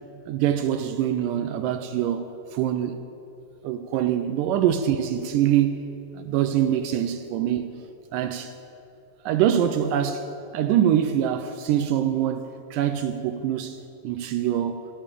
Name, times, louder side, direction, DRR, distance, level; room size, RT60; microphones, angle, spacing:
voice 1, 0.3-2.3 2.5-3.0 3.6-7.8 8.1-8.5 9.3-10.3 10.5-13.8 14.0-14.9, right 10 dB, 80° right, 2.0 m, -24 dB
12.5 x 8.9 x 8.4 m
omnidirectional pair, 4.2 m